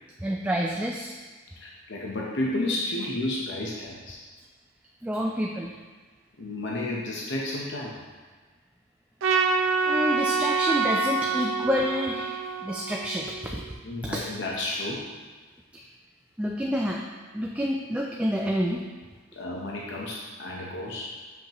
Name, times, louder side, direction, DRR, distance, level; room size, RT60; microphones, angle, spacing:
voice 1, 0.2-1.2 5.0-5.7 9.8-13.8 14.0-14.2 15.7-15.9 16.4-17.0 17.3-18.9, equal, 5° right, -1 dB, 0.3 m, -28 dB
voice 2, 1.6-4.2 6.4-8.0 13.8-15.1 19.4-21.2, left 1 dB, 60° left, -3 dB, 0.8 m, -32 dB
Trumpet, 9.2-13.6, right 4 dB, 75° right, 0.5 m, -26 dB
7.3 x 5.3 x 3.0 m, 1.4 s
head